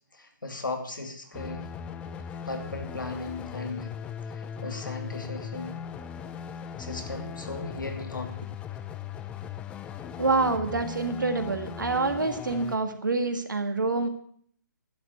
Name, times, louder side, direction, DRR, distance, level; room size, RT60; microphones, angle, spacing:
voice 1, 0.1-1.6 2.4-3.9 4.3-5.8 6.8-8.3, left 2 dB, 80° left, 5 dB, 2.7 m, -36 dB
sound 1, 1.3-12.8, left 7 dB, 10° left, 0.5 m, -39 dB
voice 2, 10.2-14.1, right 3 dB, 75° right, 7 dB, 1.9 m, -26 dB
11.5 x 7.4 x 8.0 m, 0.62 s
figure-of-eight pair, 140°, 11 cm